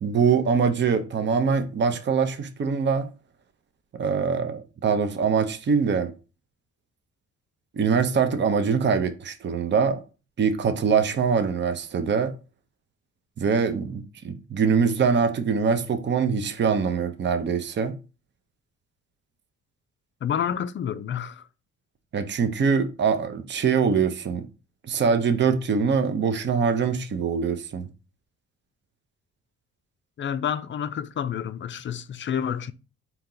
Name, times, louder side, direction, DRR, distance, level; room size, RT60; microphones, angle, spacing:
voice 1, 0.0-3.1 3.9-6.1 7.7-10.0 10.4-12.3 13.4-18.0 22.1-24.5 24.8-27.9, right 6 dB, 40° right, 0.6 m, -23 dB
voice 2, 20.2-21.4 30.2-32.7, left 8 dB, 40° left, 0.4 m, -29 dB
4.2 x 2.9 x 3.8 m
cardioid pair, 90°, 30 cm